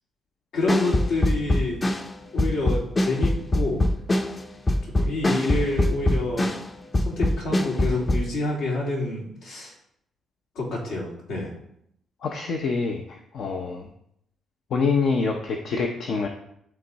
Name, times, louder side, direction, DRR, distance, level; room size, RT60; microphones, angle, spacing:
voice 1, 0.5-1.8 2.3-3.8 4.8-6.6 7.0-9.7 10.5-11.5, left 2 dB, 85° left, -4 dB, 2.7 m, -28 dB
sound 1, 0.7-6.7 6.9-8.3, left 1 dB, 25° left, 0.6 m, -23 dB
voice 2, 12.2-13.9 14.7-16.3, left 4 dB, 65° left, 3 dB, 0.7 m, -26 dB
11.0 x 3.6 x 4.0 m, 0.73 s
cardioid pair, 90°, 0 cm